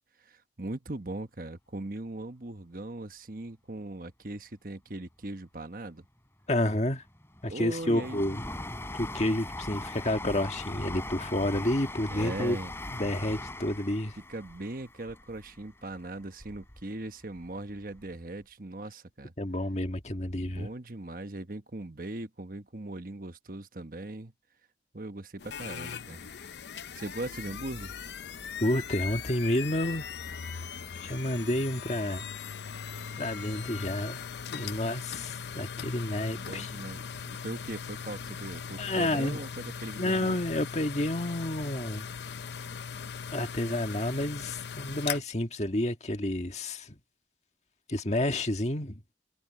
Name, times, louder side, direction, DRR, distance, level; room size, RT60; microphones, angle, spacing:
voice 1, 0.2-6.0 7.5-8.3 12.1-12.7 14.3-19.3 20.3-24.3 24.9-26.2 26.9-27.9 36.4-40.4, right 2 dB, 50° right, 1.2 m, -39 dB
voice 2, 6.5-7.0 7.4-8.4 8.9-12.6 13.0-14.2 19.4-20.7 28.6-30.1 30.5-30.6 31.0-32.3 33.2-34.2 34.5-36.7 38.8-39.4 40.0-42.0 43.3-47.0 47.9-49.0, left 1 dB, 40° left, 1.7 m, -30 dB
Train, 7.0-16.8 17.2-18.1 18.4-18.5, left 1 dB, 15° left, 4.6 m, -40 dB
sound 1, 25.4-45.2, left 7 dB, 75° left, 0.6 m, -39 dB
head